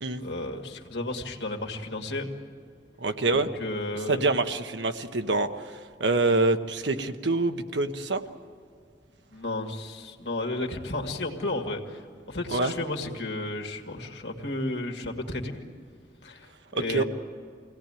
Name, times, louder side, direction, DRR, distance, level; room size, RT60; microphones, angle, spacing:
voice 1, 0.2-2.3 3.3-4.3 9.3-15.6 16.2-17.0, left 2 dB, 75° left, 2 dB, 2.2 m, -33 dB
voice 2, 3.0-3.5 4.1-5.5 6.0-8.2 12.5-12.7 16.7-17.0, right 3 dB, 90° right, 8 dB, 1.1 m, -25 dB
24.0 x 17.5 x 9.0 m, 2.2 s
head